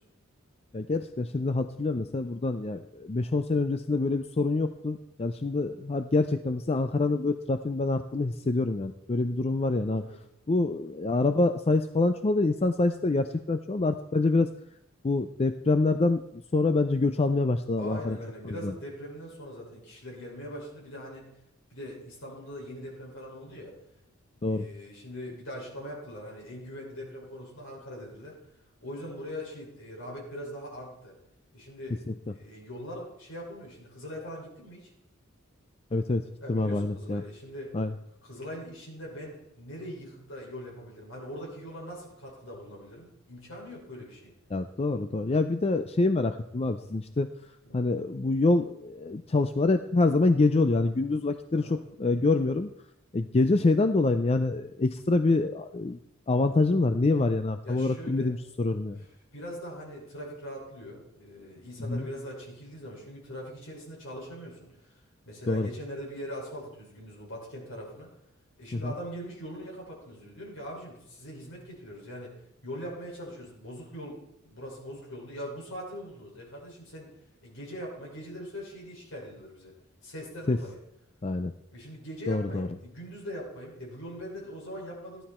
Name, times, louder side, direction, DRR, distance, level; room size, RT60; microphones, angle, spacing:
voice 1, 0.7-10.0 10.5-14.5 15.0-18.2 18.4-18.7 24.4-24.7 32.1-32.2 35.9-37.2 37.7-37.9 44.5-47.3 47.7-52.7 53.1-56.0 56.3-59.0 61.8-62.0 65.5-65.7 68.7-68.9 80.5-80.6 81.2-81.5 82.3-82.7, left 3 dB, 30° left, 9 dB, 0.4 m, -26 dB
voice 2, 17.8-21.3 21.7-23.7 24.5-28.4 28.8-31.1 31.5-32.0 32.3-34.9 36.4-37.8 38.2-44.3 47.6-47.8 51.5-51.8 57.6-58.3 59.3-64.9 65.2-68.1 68.6-72.3 72.6-74.2 74.4-77.1 77.4-79.7 80.0-80.8 81.7-85.2, equal, 70° left, -3 dB, 5.8 m, -41 dB
15.0 x 11.5 x 4.4 m, 0.80 s
head